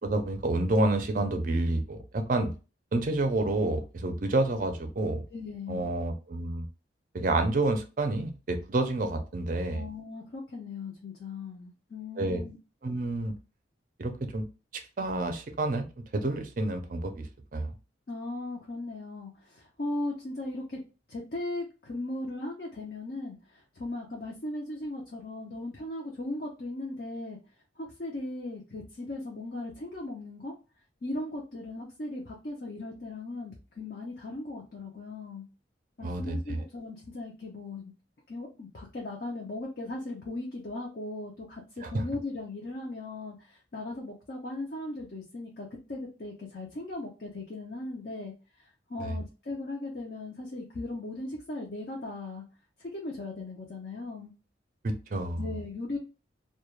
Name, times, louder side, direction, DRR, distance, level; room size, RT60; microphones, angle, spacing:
voice 1, 0.0-2.5 2.9-5.2 5.7-6.7 7.1-9.8 12.2-12.4 12.8-13.3 14.0-14.4 14.7-15.9 16.1-17.3 17.5-17.7 36.0-36.6 41.8-42.0 49.0-49.2 54.8-55.4, right 2 dB, 45° right, 6 dB, 0.4 m, -29 dB
voice 2, 5.3-5.9 9.7-12.6 18.1-20.8 21.1-27.4 27.8-30.5 31.0-35.4 36.0-37.9 38.3-52.4 52.8-54.3 55.4-56.0, left 2 dB, 50° left, -2 dB, 0.5 m, -38 dB
2.3 x 2.2 x 3.0 m, 0.32 s
head